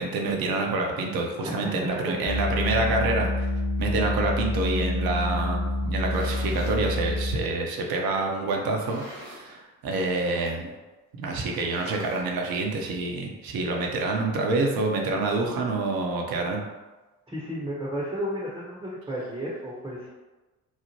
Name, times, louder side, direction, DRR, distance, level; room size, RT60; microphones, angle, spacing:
voice 1, 0.0-3.5 3.8-10.7 11.2-16.7, right 3 dB, 50° right, 1 dB, 0.7 m, -27 dB
voice 2, 1.4-2.2 17.3-20.1, equal, 10° right, -6 dB, 0.7 m, -33 dB
sound 1, 2.3-7.6, left 1 dB, 35° left, 0.6 m, -27 dB
sound 2, 5.8-6.9 7.6-7.7 8.6-9.6 9.9-10.2 10.5-10.6 11.5-12.6, equal, 90° right, 0.8 m, -45 dB
3.0 x 2.0 x 2.8 m, 1.2 s
hypercardioid pair, 45°, 48 cm